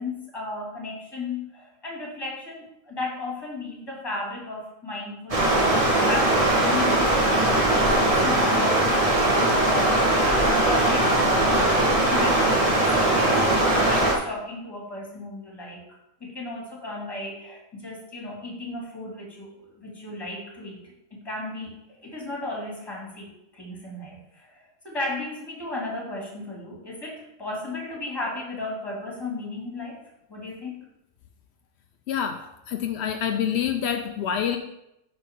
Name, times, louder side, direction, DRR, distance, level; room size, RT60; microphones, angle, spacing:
voice 1, 0.0-5.7 6.1-20.8 21.1-21.8 22.0-30.0 30.3-30.8, left 2 dB, 15° left, -3 dB, 2.3 m, -35 dB
Stream, 5.3-14.1, right 1 dB, 25° right, 1.3 m, -20 dB
voice 2, 32.1-32.4 32.7-34.6, left 8 dB, 75° left, 5 dB, 0.6 m, -26 dB
8.3 x 6.2 x 3.7 m, 0.84 s
omnidirectional pair, 1.8 m